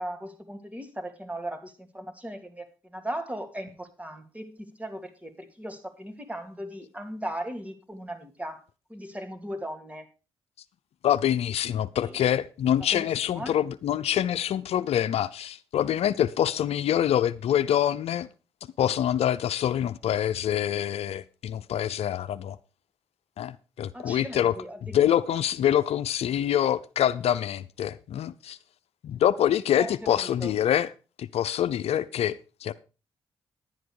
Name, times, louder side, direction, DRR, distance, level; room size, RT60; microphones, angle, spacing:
voice 1, 0.0-8.6 8.9-10.1 12.0-12.2 12.8-13.5 23.9-25.4 29.8-29.9 30.2-30.5, right 1 dB, 15° right, 2.5 m, -38 dB
voice 2, 11.0-18.3 18.8-22.6 23.4-24.5 24.9-28.6 29.0-30.9 31.2-32.7, left 10 dB, 75° left, 0.6 m, -25 dB
11.0 x 9.3 x 4.8 m
supercardioid pair, 55°, 10 cm